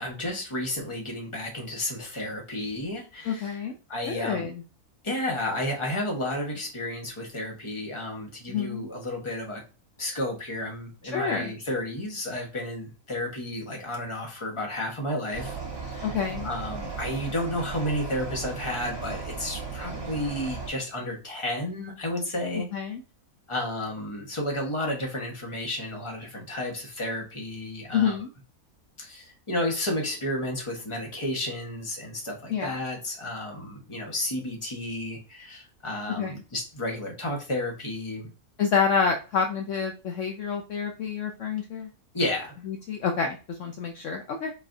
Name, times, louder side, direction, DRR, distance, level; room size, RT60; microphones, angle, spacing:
voice 1, 0.0-3.6 3.9-4.5 5.0-9.6 10.0-16.2 16.4-22.9 23.5-28.2 29.0-38.3 42.1-42.5, left 1 dB, 20° left, 0 dB, 1.2 m, -32 dB
voice 2, 3.2-3.7 4.1-4.6 8.5-8.9 11.1-11.5 16.0-16.5 22.5-23.0 27.9-28.3 32.5-32.8 36.1-36.3 38.6-41.9 42.7-44.5, left 6 dB, 65° left, 3 dB, 0.9 m, -28 dB
sound 1, 15.3-20.7, right 4 dB, 20° right, 0.7 m, -36 dB
4.3 x 4.1 x 2.6 m, 0.32 s
omnidirectional pair, 1.5 m